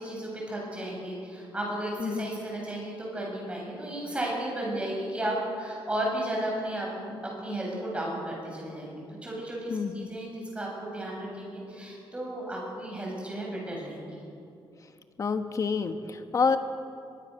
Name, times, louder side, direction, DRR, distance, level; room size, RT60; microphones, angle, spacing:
voice 1, 0.0-14.2, right 1 dB, 15° right, -2 dB, 7.6 m, -34 dB
voice 2, 9.7-10.1 15.2-16.6, left 5 dB, 35° left, 8 dB, 1.3 m, -28 dB
23.5 x 22.0 x 6.6 m, 2.5 s
wide cardioid pair, 155°, 9 cm